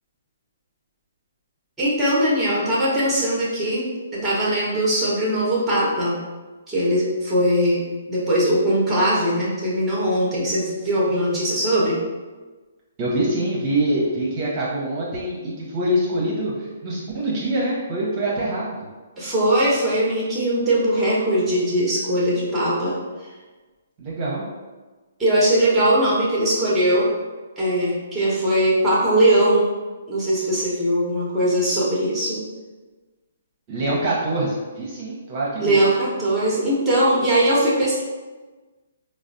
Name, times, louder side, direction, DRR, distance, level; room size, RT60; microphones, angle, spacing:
voice 1, 1.8-6.2 6.7-7.8 8.1-12.0 19.2-23.0 25.2-27.1 27.6-29.7 30.1-32.4 35.6-38.0, right 1 dB, 5° right, -7 dB, 0.9 m, -20 dB
voice 2, 13.0-18.6 24.0-24.5 33.7-35.8, right 1 dB, 35° right, -5 dB, 0.8 m, -24 dB
4.0 x 2.0 x 2.6 m, 1.3 s
hypercardioid pair, 140°, 0 cm